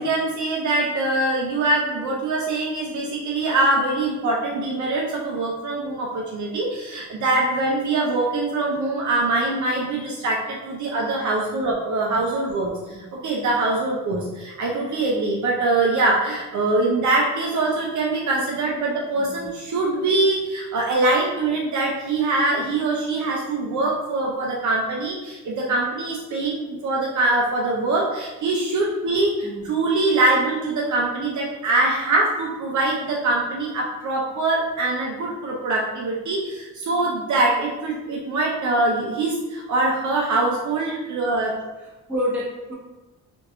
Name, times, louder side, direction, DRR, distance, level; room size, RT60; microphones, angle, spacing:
voice 1, 0.0-41.5, right 2 dB, 55° right, -2 dB, 0.6 m, -23 dB
voice 2, 19.1-19.5 29.4-29.7 41.8-42.7, left 1 dB, 5° right, -9 dB, 1.3 m, -30 dB
3.4 x 3.0 x 2.5 m, 1.1 s
cardioid pair, 140°, 35 cm